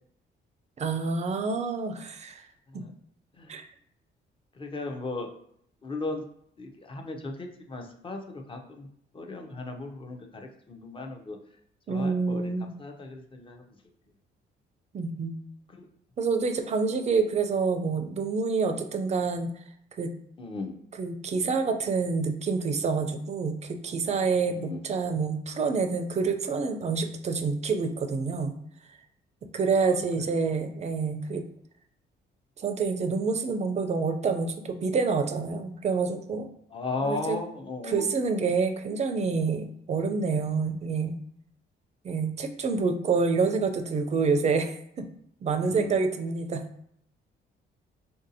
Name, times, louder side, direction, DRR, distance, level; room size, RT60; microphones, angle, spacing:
voice 1, 0.8-2.4 2.7-2.8 3.5-3.6 11.9-12.7 14.9-15.3 16.2-19.5 20.0-20.1 21.0-28.6 29.5-31.4 32.6-36.5 37.0-37.4 37.9-41.2 42.0-45.1 45.4-46.6, right 4 dB, 35° right, 6 dB, 0.4 m, -27 dB
voice 2, 4.6-5.3 5.8-6.2 6.6-8.9 9.1-11.4 11.9-12.5 12.8-13.6 15.7-15.9 20.4-20.8 24.5-24.8 29.7-30.3 36.7-38.1 45.6-45.9, left 3 dB, 25° left, 3 dB, 0.5 m, -36 dB
3.6 x 2.6 x 2.6 m, 0.69 s
cardioid pair, 90°, 20 cm